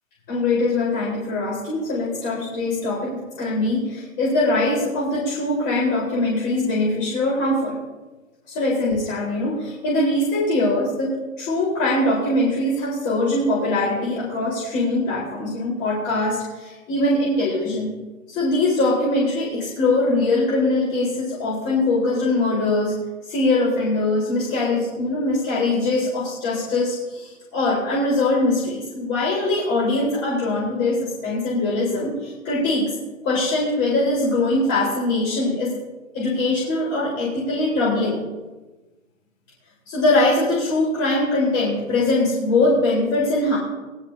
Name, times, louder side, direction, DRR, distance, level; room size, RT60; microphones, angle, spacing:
voice 1, 0.3-7.8 8.5-17.9 18.3-23.0 23.3-32.9 33.2-35.8 36.1-38.2 39.9-43.6, left 2 dB, 25° left, -6 dB, 4.2 m, -22 dB
20.5 x 12.0 x 2.8 m, 1.2 s
figure-of-eight pair, 130°, 42 cm